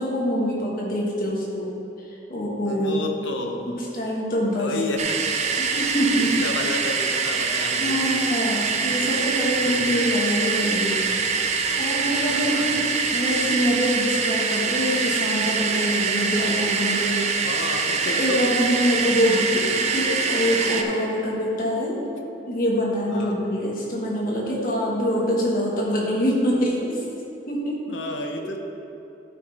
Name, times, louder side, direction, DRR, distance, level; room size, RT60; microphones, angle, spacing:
voice 1, 0.0-3.0 3.7-4.7 5.6-6.4 7.4-11.0 11.3-11.4 11.8-17.3 18.0-22.1 22.5-27.0 27.5-27.8, equal, 50° left, -4 dB, 1.7 m, -25 dB
voice 2, 2.6-3.8 4.6-5.2 6.1-8.0 8.7-8.9 9.6-9.7 12.3-12.7 17.4-18.6 19.0-19.1 23.1-23.3 27.9-28.6, left 2 dB, 85° left, 3 dB, 0.8 m, -31 dB
sound 1, 5.0-20.8, right 5 dB, 35° right, 0.5 m, -24 dB
12.0 x 5.8 x 3.5 m, 2.9 s
head